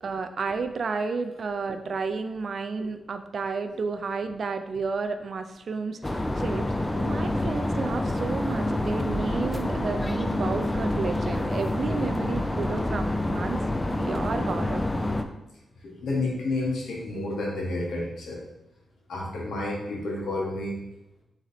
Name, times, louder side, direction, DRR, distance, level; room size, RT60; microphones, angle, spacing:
voice 1, 0.0-13.0 13.3-13.6 14.0-14.9, right 4 dB, 60° right, 8 dB, 0.3 m, -31 dB
sound 1, 6.0-15.2, left 1 dB, 20° left, 0.4 m, -27 dB
voice 2, 15.8-18.4 19.1-20.8, left 2 dB, 85° left, -2 dB, 1.1 m, -30 dB
3.8 x 3.0 x 4.2 m, 0.89 s
cardioid pair, 75°, 0 cm